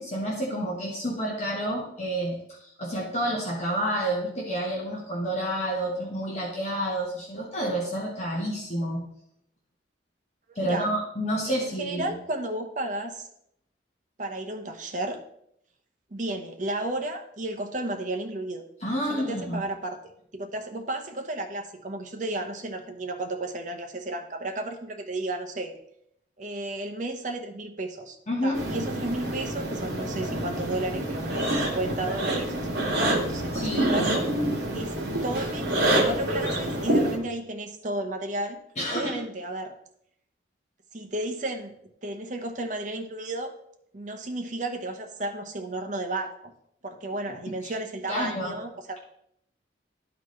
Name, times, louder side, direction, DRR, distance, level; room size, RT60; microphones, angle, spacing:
voice 1, 0.0-9.0 10.5-12.1 18.8-19.6 28.3-28.6 33.5-33.9 38.8-39.2 47.6-47.7 48.1-48.5, right 1 dB, 35° left, -3 dB, 1.3 m, -29 dB
voice 2, 10.5-10.9 11.5-13.3 14.2-15.2 16.1-18.6 19.1-20.0 20.3-25.7 26.4-28.2 28.4-34.1 34.7-34.9 35.2-38.6 38.9-39.7 40.9-41.7 42.0-43.5 43.9-46.5 46.8-49.0, right 2 dB, 40° right, 4 dB, 0.8 m, -33 dB
sound 1, 28.5-37.2, right 1 dB, 55° right, 2.0 m, -27 dB
12.5 x 4.1 x 3.2 m, 0.74 s
head